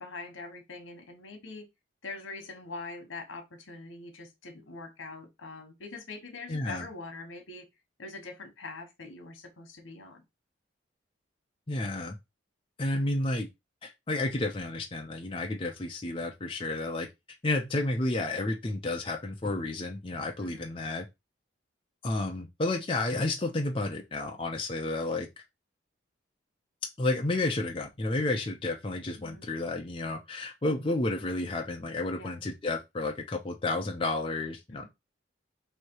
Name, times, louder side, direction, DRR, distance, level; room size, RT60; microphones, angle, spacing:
voice 1, 0.0-1.7 2.0-7.7 8.0-10.2 20.4-20.7 29.2-29.5 32.1-32.4 34.7-34.9, left 3 dB, 85° left, 1.1 m, -43 dB
voice 2, 6.5-6.9 11.7-12.2 12.8-13.5 13.8-17.1 17.4-21.1 22.0-25.3 27.0-34.9, left 2 dB, 25° left, 0.5 m, -31 dB
3.2 x 2.7 x 4.5 m
head